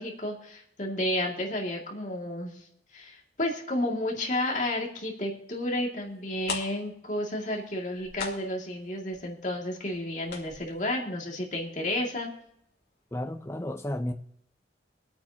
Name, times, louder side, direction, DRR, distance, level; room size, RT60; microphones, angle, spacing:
voice 1, 0.0-2.6 2.9-12.3, left 1 dB, 45° left, -1 dB, 2.2 m, -31 dB
sound 1, 6.1-6.2 6.4-12.0 12.2-12.3 12.8-13.0 13.3-13.4, left 4 dB, 70° left, 2.2 m, -40 dB
voice 2, 13.1-14.1, left 1 dB, 15° left, 5 dB, 0.7 m, -32 dB
24.0 x 8.7 x 2.8 m, 0.71 s
head